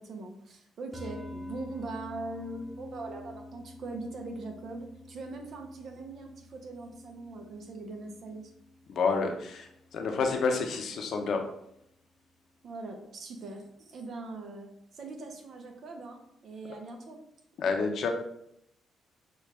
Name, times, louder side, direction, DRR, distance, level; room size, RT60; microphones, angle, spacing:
voice 1, 0.0-8.5 12.6-14.7 14.9-17.2, right 2 dB, 60° right, 3 dB, 0.9 m, -41 dB
sound 1, 0.9-11.4, left 1 dB, 5° right, 1.0 m, -48 dB
voice 2, 8.9-11.4 17.6-18.1, left 4 dB, 65° left, 4 dB, 0.8 m, -29 dB
6.2 x 2.5 x 3.4 m, 0.76 s
cardioid pair, 90°, 0 cm